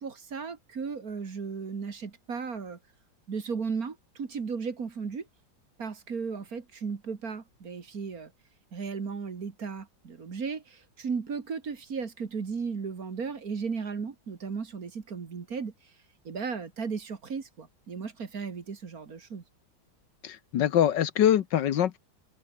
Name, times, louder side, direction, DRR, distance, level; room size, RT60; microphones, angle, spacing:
voice 1, 0.0-2.8 3.3-5.3 5.8-8.3 8.7-15.7 16.3-19.4, right 5 dB, 50° right, 2.3 m, -35 dB
voice 2, 20.2-22.0, left 10 dB, 70° left, 1.6 m, -24 dB
omnidirectional pair, 2.0 m